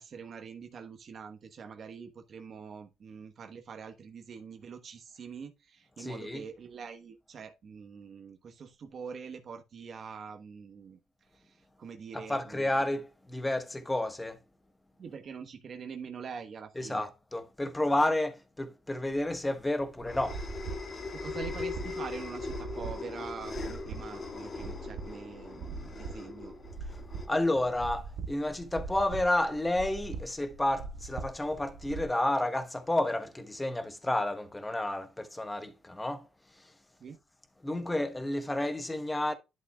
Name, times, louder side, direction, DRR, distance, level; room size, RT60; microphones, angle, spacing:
voice 1, 0.0-12.7 15.0-17.1 21.1-26.5 37.0-37.2, right 6 dB, 55° right, 1.2 m, -44 dB
voice 2, 6.0-6.4 12.1-14.4 16.8-20.4 27.3-36.3 37.6-39.3, left 1 dB, 15° left, 1.3 m, -31 dB
sound 1, 19.2-28.0, left 4 dB, 40° left, 1.7 m, -40 dB
sound 2, 20.2-32.1, right 4 dB, 75° right, 1.2 m, -42 dB
11.0 x 6.2 x 2.3 m
cardioid pair, 90°, 0 cm